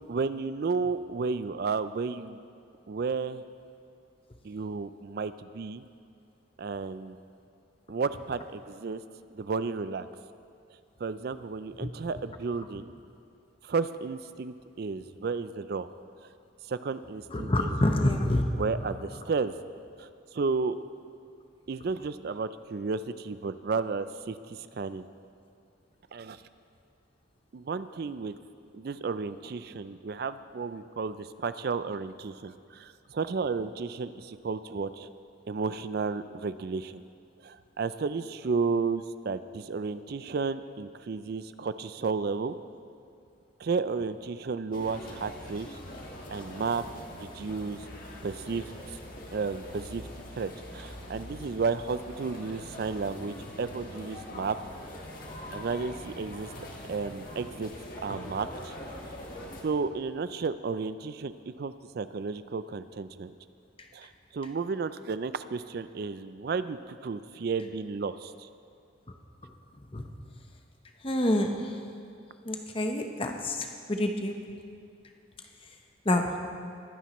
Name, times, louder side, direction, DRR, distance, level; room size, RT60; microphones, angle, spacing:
voice 1, 0.1-2.4 2.9-3.4 4.4-5.9 6.6-7.2 7.9-9.0 9.3-10.1 11.0-12.9 13.6-15.9 16.7-17.7 18.6-19.5 20.0-20.8 21.7-25.1 26.1-26.4 27.5-28.3 28.7-35.1 35.5-37.0 37.4-42.6 43.6-45.8 46.3-46.8 47.2-47.9 48.2-48.7 49.3-50.1 50.3-54.6 55.5-56.5 56.9-57.7 58.0-58.8 59.6-63.3 63.9-68.5, right 4 dB, 50° right, 13 dB, 0.4 m, -32 dB
voice 2, 17.3-18.6 69.4-69.5 69.9-70.0 71.0-71.8 72.4-74.5 76.0-76.4, left 1 dB, 30° left, 4 dB, 0.9 m, -27 dB
sound 1, 44.7-59.6, left 1 dB, 45° left, 1.6 m, -43 dB
21.0 x 10.0 x 3.1 m, 2.4 s
head